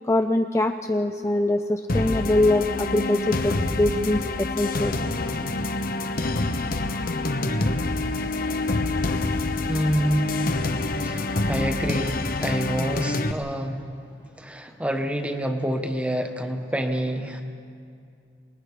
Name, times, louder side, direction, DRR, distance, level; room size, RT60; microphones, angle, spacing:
voice 1, 0.0-5.0, left 1 dB, 15° left, 6 dB, 0.5 m, -23 dB
sound 1, 1.9-13.3, left 2 dB, 55° left, 1.0 m, -26 dB
voice 2, 9.7-10.4 10.8-13.8 14.4-17.4, equal, 5° right, 5 dB, 1.2 m, -27 dB
28.5 x 20.0 x 5.0 m, 2.4 s
head